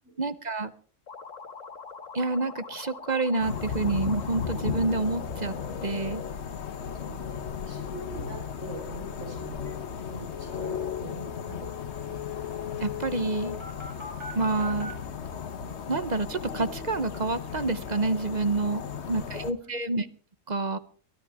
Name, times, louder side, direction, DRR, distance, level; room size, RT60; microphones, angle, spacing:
voice 1, 0.2-0.7 2.1-5.5 5.8-6.2 12.8-13.6 14.3-14.9 15.9-18.8 19.1-20.1 20.5-20.8, right 3 dB, 40° right, 12 dB, 0.9 m, -28 dB
sound 1, 1.1-6.3, left 5 dB, 80° left, 1.8 m, -43 dB
sound 2, 3.4-19.5, left 7 dB, 60° left, 1.3 m, -36 dB
voice 2, 6.9-9.7 10.1-12.0 19.0-19.2 19.6-19.8, right 1 dB, 75° right, 1 dB, 4.6 m, -43 dB
sound 3, 9.7-9.8 10.0-10.1 10.3-14.9, left 8 dB, 20° right, 5.6 m, -39 dB
22.5 x 13.0 x 3.5 m, 0.41 s
omnidirectional pair, 1.3 m